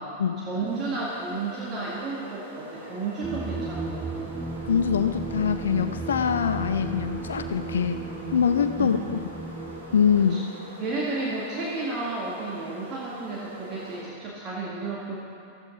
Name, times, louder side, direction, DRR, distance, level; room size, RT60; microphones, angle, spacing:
voice 1, 0.0-4.4 8.8-9.1 10.3-10.4 10.8-15.2, right 3 dB, 30° right, -5 dB, 2.1 m, -32 dB
sound 1, 0.6-14.0, right 1 dB, 80° right, 2.7 m, -43 dB
Darkest Stars, 3.2-10.3, right 3 dB, 15° right, 0.8 m, -35 dB
voice 2, 4.7-8.0 8.3-9.0 9.9-10.4, left 7 dB, 65° left, 9 dB, 0.6 m, -23 dB
14.5 x 13.0 x 4.0 m, 2.5 s
figure-of-eight pair, 90°, 0 cm